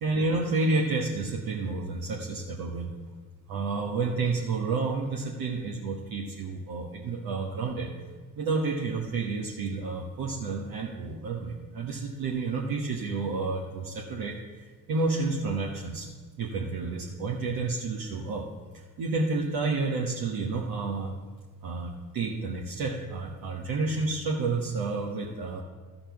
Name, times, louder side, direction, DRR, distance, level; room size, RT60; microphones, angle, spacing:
voice 1, 0.0-2.9 3.5-7.9 8.4-16.1 16.4-18.5 18.7-21.1 21.6-25.6, right 3 dB, 55° right, -2 dB, 1.3 m, -30 dB
13.0 x 4.3 x 6.9 m, 1.4 s
hypercardioid pair, 65°, 41 cm